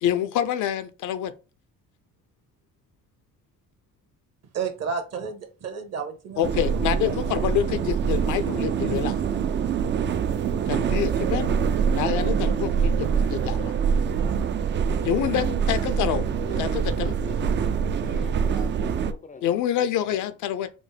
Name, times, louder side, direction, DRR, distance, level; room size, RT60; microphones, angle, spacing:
voice 1, 0.0-1.3 6.4-9.2 10.7-11.5 11.9-13.7 15.0-16.3 16.6-17.2 19.4-20.7, left 10 dB, 70° left, 0.6 m, -26 dB
voice 2, 4.5-7.5, right 6 dB, 55° right, 1.2 m, -33 dB
sound 1, 6.4-19.1, right 7 dB, 35° right, 0.4 m, -25 dB
voice 3, 16.3-16.8 17.2-17.4 18.0-20.3, left 4 dB, 25° left, 0.4 m, -44 dB
5.1 x 2.2 x 3.3 m
cardioid pair, 95°, 31 cm